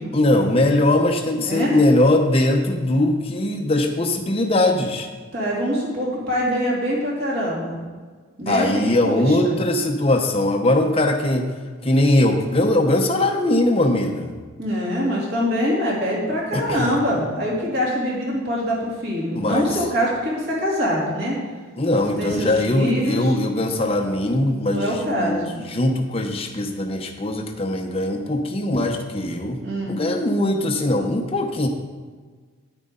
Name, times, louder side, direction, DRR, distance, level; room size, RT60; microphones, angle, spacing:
voice 1, 0.1-5.1 8.5-11.5 11.8-14.3 16.5-17.0 19.3-19.8 21.8-25.4 25.7-29.6 29.9-31.7, left 1 dB, 30° left, 2 dB, 0.7 m, -20 dB
voice 2, 5.3-7.8 8.4-9.6 14.6-21.3 22.2-23.3 24.6-25.6 29.6-30.0, equal, 50° right, -5 dB, 3.0 m, -24 dB
9.3 x 9.1 x 3.8 m, 1.5 s
head